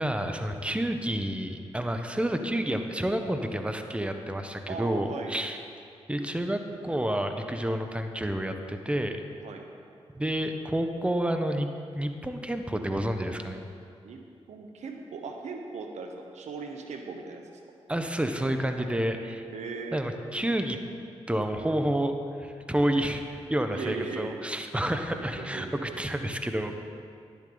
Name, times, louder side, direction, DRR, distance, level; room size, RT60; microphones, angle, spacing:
voice 1, 0.0-5.6 6.1-9.2 10.1-11.7 11.9-13.7 17.9-19.5 19.9-20.8 21.3-26.8, right 1 dB, 10° right, 6 dB, 1.0 m, -29 dB
voice 2, 4.7-5.4 9.4-9.7 14.0-14.2 14.5-17.6 19.5-20.0 23.7-24.4 25.1-25.9, right 4 dB, 75° right, 4 dB, 0.9 m, -38 dB
11.0 x 11.0 x 3.9 m, 2.4 s
supercardioid pair, 45°, 12 cm